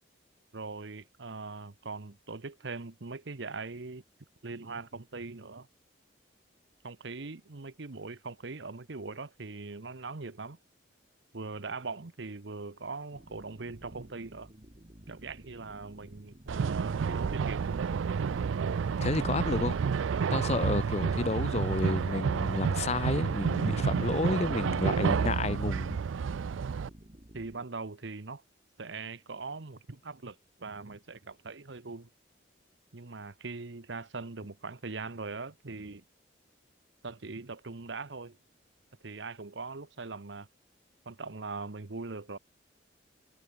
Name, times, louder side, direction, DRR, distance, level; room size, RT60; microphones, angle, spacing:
voice 1, 0.5-4.0 4.4-5.7 6.8-10.6 11.3-14.5 15.1-17.9 27.3-28.4 28.8-32.1 32.9-36.0 37.0-38.4 39.0-40.5 41.1-42.4, right 3 dB, 70° right, 1.0 m, -41 dB
sound 1, 13.1-27.7, right 1 dB, 35° right, 1.3 m, -54 dB
sound 2, 16.5-26.9, right 6 dB, 90° right, 0.4 m, -30 dB
voice 2, 19.0-19.8 20.3-26.0, left 3 dB, 35° left, 0.6 m, -31 dB
head